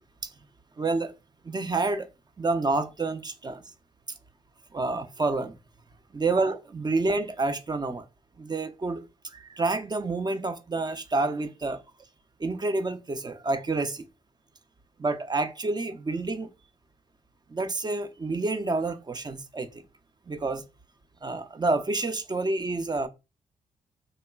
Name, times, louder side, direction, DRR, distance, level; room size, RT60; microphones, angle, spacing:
voice 1, 0.8-1.1 1.4-2.1 2.4-3.6 4.7-5.5 6.1-8.0 8.4-9.0 9.3-11.8 12.4-14.0 15.0-16.5 17.5-19.7 20.3-20.6 21.2-23.1, right 3 dB, 25° right, 0.4 m, -28 dB
3.0 x 2.2 x 2.2 m
supercardioid pair, 50°, 16 cm